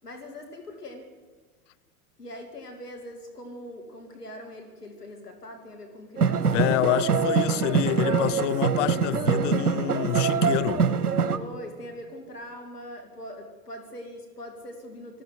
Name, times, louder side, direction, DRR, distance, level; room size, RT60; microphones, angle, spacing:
voice 1, 0.0-1.1 2.2-6.9 7.4-8.7 11.3-15.2, left 1 dB, 85° left, 2.9 m, -41 dB
sound 1, 6.2-11.4, right 6 dB, 80° right, 1.3 m, -24 dB
voice 2, 6.5-10.9, left 17 dB, 55° left, 0.8 m, -27 dB
19.5 x 14.5 x 9.5 m
figure-of-eight pair, 85°, 45 cm